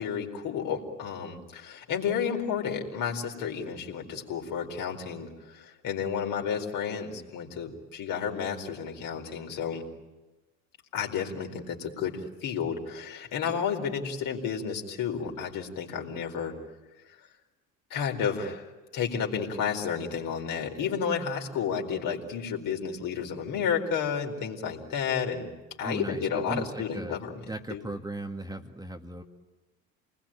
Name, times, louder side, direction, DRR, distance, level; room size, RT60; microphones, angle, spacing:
voice 1, 0.0-9.8 10.9-16.5 17.9-25.5 25.8-27.3 27.7-27.8, left 7 dB, 55° left, 2 dB, 4.5 m, -31 dB
voice 2, 25.8-27.2 27.5-29.2, right 2 dB, 10° right, 3 dB, 2.1 m, -37 dB
29.0 x 20.5 x 8.9 m, 1.1 s
hypercardioid pair, 65°, 39 cm